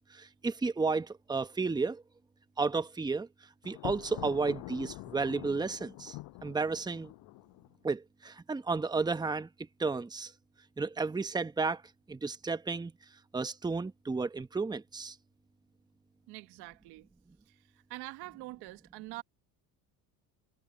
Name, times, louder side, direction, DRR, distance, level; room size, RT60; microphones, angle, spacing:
voice 1, 0.1-2.0 2.6-3.3 3.6-6.2 6.4-7.1 7.8-9.5 9.8-10.3 10.8-11.8 12.1-12.9 13.3-15.2, right 4 dB, 10° right, 0.9 m, -32 dB
Thunder, 3.6-7.8, left 21 dB, 85° left, 7.8 m, -45 dB
voice 2, 16.3-17.1 17.5-19.2, right 20 dB, 85° right, 1.3 m, -45 dB
cardioid pair, 115°, 38 cm